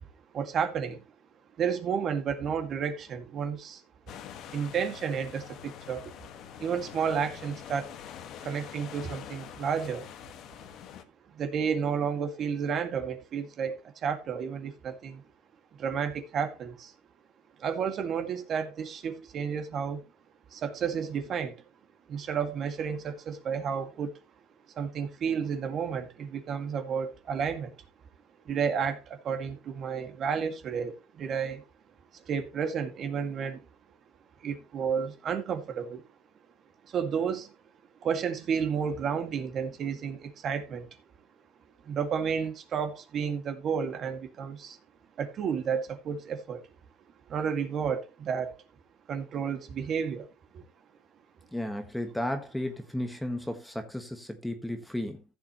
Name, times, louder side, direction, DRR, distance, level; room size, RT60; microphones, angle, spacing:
voice 1, 0.3-1.0 1.6-3.8 4.5-6.1 6.6-8.0 8.4-10.1 11.3-15.2 15.8-16.9 17.6-20.0 20.5-21.6 22.1-24.2 24.8-27.7 28.5-31.6 32.1-33.6 34.4-36.0 36.9-37.5 38.0-40.9 41.8-44.8 45.2-46.7 47.3-48.6 49.1-50.3 50.5-50.6, right 7 dB, 40° right, 2.0 m, -31 dB
sound 1, 4.1-11.0, left 9 dB, 50° left, 1.5 m, -45 dB
voice 2, 51.5-55.2, left 1 dB, 5° left, 1.4 m, -34 dB
15.0 x 7.3 x 3.0 m
cardioid pair, 130°, 0 cm